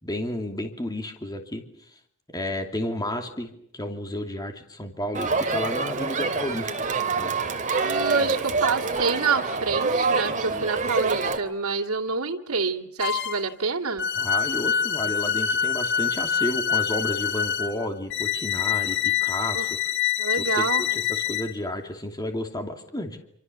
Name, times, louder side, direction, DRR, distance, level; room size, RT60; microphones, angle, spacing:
voice 1, 0.0-1.6 2.3-6.7 7.2-7.4 8.2-8.3 10.3-10.7 14.2-19.9 20.5-23.2, left 1 dB, 20° left, 5 dB, 2.8 m, -32 dB
Crowd, 5.1-11.4, right 4 dB, 35° right, 2.7 m, -26 dB
voice 2, 7.8-14.1 19.5-19.7 20.2-21.0, right 5 dB, 90° right, 1 dB, 2.4 m, -27 dB
sound 1, 13.0-13.5 14.0-21.5, left 8 dB, 55° left, 1.5 m, -26 dB
27.5 x 26.5 x 6.9 m, 0.69 s
head